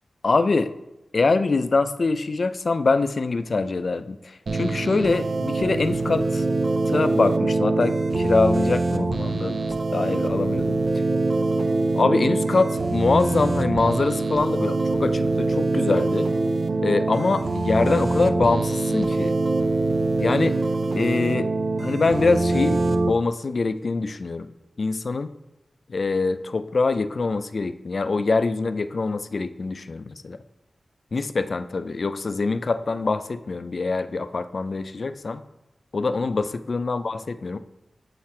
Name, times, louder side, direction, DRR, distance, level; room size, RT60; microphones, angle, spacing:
voice 1, 0.2-0.7 1.1-6.5 6.9-9.6 9.9-10.8 11.9-16.3 16.8-19.4 20.2-20.6 21.0-21.5 21.8-25.3 25.9-30.4 31.1-35.4 35.9-37.6, left 3 dB, 60° left, 12 dB, 0.3 m, -24 dB
sound 1, 4.5-23.1, right 2 dB, 65° right, 0.5 m, -24 dB
5.9 x 5.6 x 4.3 m, 0.93 s
wide cardioid pair, 75°, 0 cm